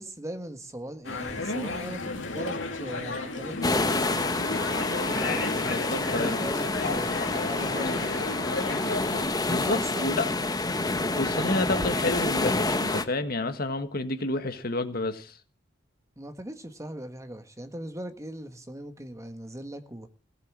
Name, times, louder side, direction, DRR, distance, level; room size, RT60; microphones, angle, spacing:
voice 1, 0.0-4.4 5.1-5.4 5.7-8.2 9.4-10.4 10.9-11.2 16.2-20.1, right 1 dB, 15° right, 8 dB, 1.5 m, -39 dB
sound 1, 1.0-9.2, left 3 dB, 80° left, 2.7 m, -33 dB
sound 2, 3.6-13.0, left 2 dB, 20° left, 1.3 m, -28 dB
voice 2, 5.7-6.4 9.1-10.2 11.2-15.4, left 2 dB, 50° left, 9 dB, 1.7 m, -30 dB
17.5 x 8.3 x 7.5 m, 0.37 s
head